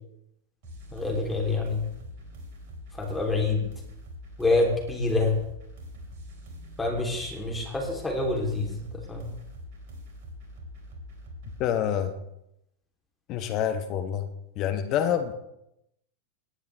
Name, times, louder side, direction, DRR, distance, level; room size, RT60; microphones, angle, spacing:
sound 1, 0.6-11.6, left 1 dB, 50° right, 4.7 m, -44 dB
voice 1, 0.9-1.8 3.0-3.7 4.4-5.3 6.8-8.8 9.1-9.3, left 3 dB, 10° left, -1 dB, 3.2 m, -26 dB
voice 2, 11.6-12.2 13.3-14.3 14.6-15.3, left 9 dB, 40° left, 8 dB, 1.1 m, -27 dB
19.5 x 10.5 x 3.4 m, 0.83 s
figure-of-eight pair, 90°, 0 cm